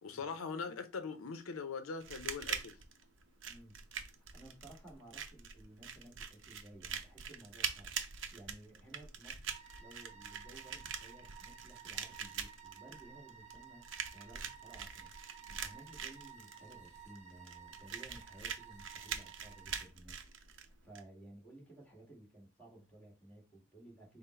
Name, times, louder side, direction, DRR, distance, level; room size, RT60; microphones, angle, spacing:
voice 1, 0.0-2.8, left 5 dB, 90° left, 0.5 m, -41 dB
sound 1, 2.0-21.0, right 7 dB, 65° right, 0.6 m, -44 dB
voice 2, 3.4-3.9 4.2-7.9 8.3-15.1 15.5-20.2 20.8-24.2, right 1 dB, 5° left, 1.5 m, -56 dB
sound 2, 9.5-19.9, right 7 dB, 35° right, 0.9 m, -55 dB
5.5 x 2.0 x 4.2 m
head